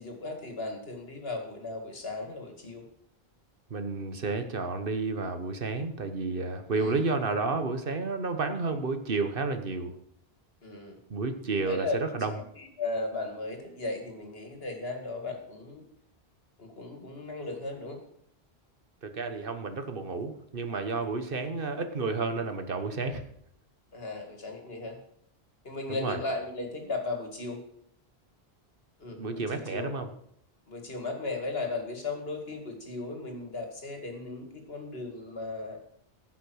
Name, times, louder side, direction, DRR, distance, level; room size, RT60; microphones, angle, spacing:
voice 1, 0.0-2.8 6.7-7.0 10.6-11.0 11.6-12.0 12.6-15.8 16.6-18.0 23.9-25.0 25.6-27.6 29.0-29.9 30.7-35.8, left 3 dB, 70° left, 4 dB, 2.4 m, -36 dB
voice 2, 3.7-9.9 11.1-12.3 19.0-23.2 25.9-26.2 29.2-30.1, right 3 dB, 60° right, 8 dB, 1.3 m, -31 dB
15.0 x 5.9 x 6.3 m, 0.71 s
omnidirectional pair, 1.0 m